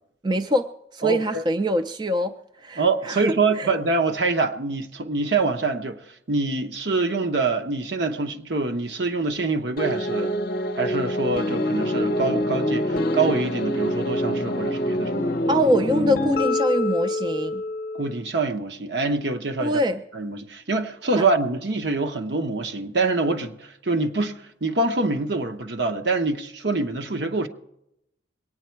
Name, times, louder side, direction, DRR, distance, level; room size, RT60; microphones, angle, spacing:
voice 1, 0.2-3.7 15.5-17.6 19.6-20.0 21.2-21.3, equal, 25° right, 0.4 m, -24 dB
voice 2, 1.0-1.4 2.8-6.0 6.3-10.3 10.8-15.4 17.9-19.8 20.1-27.5, right 3 dB, 65° right, 1.0 m, -25 dB
sound 1, 9.8-18.2, left 1 dB, 50° left, 0.8 m, -25 dB
21.0 x 9.4 x 4.5 m
head